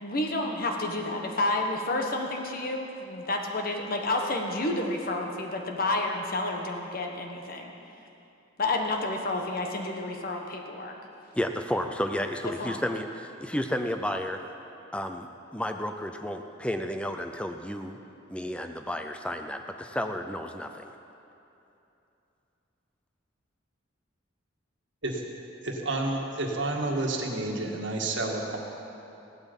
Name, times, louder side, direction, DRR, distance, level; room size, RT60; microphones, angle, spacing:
voice 1, 0.0-7.7 8.6-11.0 12.6-12.8, left 2 dB, 45° left, 2 dB, 1.3 m, -30 dB
voice 2, 11.3-14.4 14.9-15.3 15.5-18.0 18.3-20.9, equal, 5° left, 6 dB, 0.5 m, -32 dB
voice 3, 25.6-28.6, right 2 dB, 65° right, 0 dB, 1.7 m, -30 dB
16.0 x 12.0 x 5.4 m, 2.9 s
head